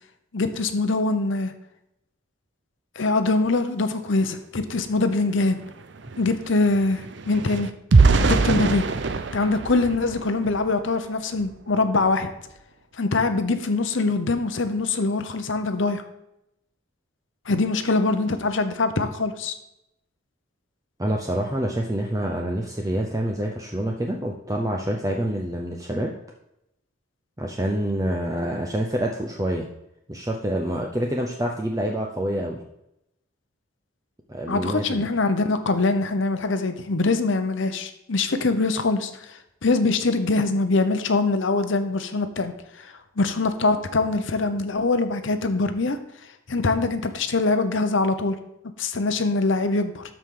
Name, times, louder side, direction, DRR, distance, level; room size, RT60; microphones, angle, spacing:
voice 1, 0.3-1.5 3.0-5.6 6.2-7.7 8.2-8.8 9.3-12.3 13.0-16.0 17.5-19.5 34.5-39.3 39.6-42.5 42.8-42.9 43.2-46.0 46.5-48.4 48.8-50.0, left 3 dB, 65° left, 9 dB, 0.8 m, -23 dB
sound 1, 4.9-5.0 5.3-10.8 11.3-11.5 11.9-12.1, right 4 dB, 60° right, 0.6 m, -23 dB
voice 2, 21.0-26.1 27.4-29.7 30.1-32.6 34.3-35.1, right 1 dB, 15° right, 1 dB, 0.6 m, -27 dB
12.5 x 4.9 x 3.8 m, 0.83 s
head